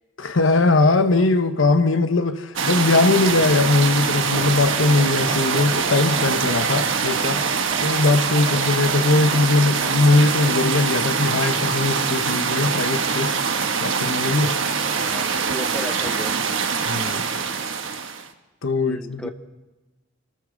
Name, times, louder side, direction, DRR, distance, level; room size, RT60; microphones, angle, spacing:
voice 1, 0.2-7.4 7.8-13.3 13.8-14.5 16.9-17.2 18.6-19.3, left 3 dB, 85° left, 1.0 m, -20 dB
sound 1, 2.6-18.3, right 5 dB, 85° right, 1.2 m, -23 dB
sound 2, 4.3-10.9, right 2 dB, 30° right, 3.2 m, -39 dB
voice 2, 8.3-8.7 14.9-16.3 18.7-19.3, equal, 5° left, 0.8 m, -36 dB
27.5 x 13.5 x 3.9 m
head